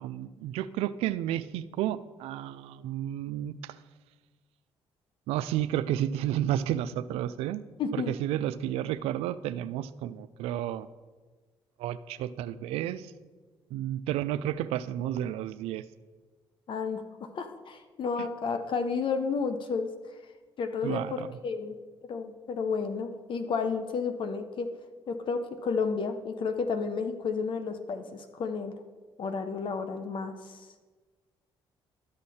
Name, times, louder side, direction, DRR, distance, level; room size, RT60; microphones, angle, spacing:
voice 1, 0.0-3.8 5.3-7.6 7.9-10.9 11.8-13.1 13.7-15.8 20.8-21.3, right 12 dB, 85° right, 15 dB, 0.4 m, -31 dB
voice 2, 7.8-8.1 16.7-17.0 17.3-19.9 20.6-21.7 22.1-24.7 25.1-28.7 29.2-30.7, left 5 dB, 55° left, 8 dB, 0.8 m, -31 dB
12.0 x 6.5 x 4.2 m, 1.3 s
cardioid pair, 80°, 10 cm